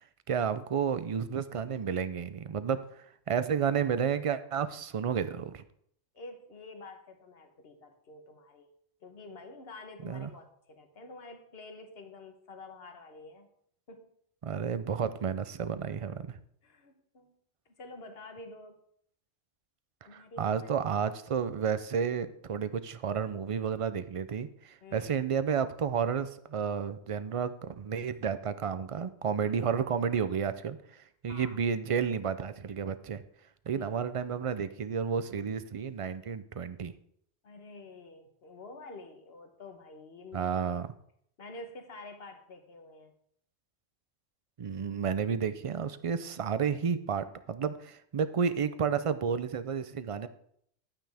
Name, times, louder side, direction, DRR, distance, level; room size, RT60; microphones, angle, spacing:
voice 1, 0.3-2.8 3.3-5.6 10.0-10.3 14.4-16.4 20.1-30.8 31.2-33.2 33.7-36.9 40.3-40.9 44.6-50.3, right 7 dB, 50° right, 12 dB, 0.4 m, -31 dB
voice 2, 6.1-8.7 9.0-13.5 13.9-14.1 16.6-17.4 17.6-18.8 20.0-20.7 24.8-25.1 29.4-29.8 31.3-31.6 33.7-34.0 37.4-40.7 41.4-43.1, left 2 dB, 60° left, 6 dB, 1.4 m, -48 dB
11.5 x 9.0 x 3.5 m, 0.68 s
omnidirectional pair, 1.2 m